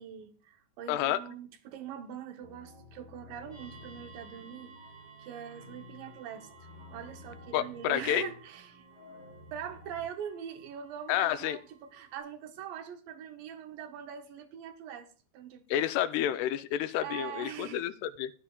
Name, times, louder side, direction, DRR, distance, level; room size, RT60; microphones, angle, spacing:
voice 1, 0.0-4.7 5.2-6.5 6.9-8.8 9.5-15.1 15.3-16.3 17.0-17.9, right 8 dB, 75° right, 2.1 m, -43 dB
voice 2, 0.9-1.2 7.5-8.3 11.1-11.6 15.7-18.3, left 11 dB, 90° left, 2.7 m, -30 dB
sound 1, 2.4-10.1, left 2 dB, 30° left, 5.3 m, -52 dB
sound 2, 3.5-12.2, right 6 dB, 60° right, 8.4 m, -57 dB
16.5 x 9.8 x 2.3 m
omnidirectional pair, 4.6 m